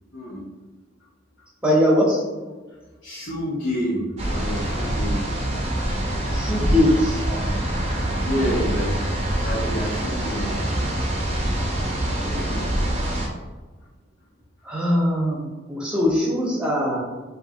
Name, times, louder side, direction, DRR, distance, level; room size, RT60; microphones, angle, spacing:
voice 1, 0.1-0.5 3.0-5.3 8.2-9.0 9.4-10.5, equal, 60° left, -9 dB, 1.2 m, -28 dB
voice 2, 1.6-2.2 6.3-7.2 12.2-12.7 14.6-17.0, left 1 dB, 5° right, -4 dB, 1.1 m, -21 dB
sound 1, 4.2-13.3, right 1 dB, 30° right, 0.7 m, -25 dB
5.4 x 2.8 x 2.9 m, 1.3 s
head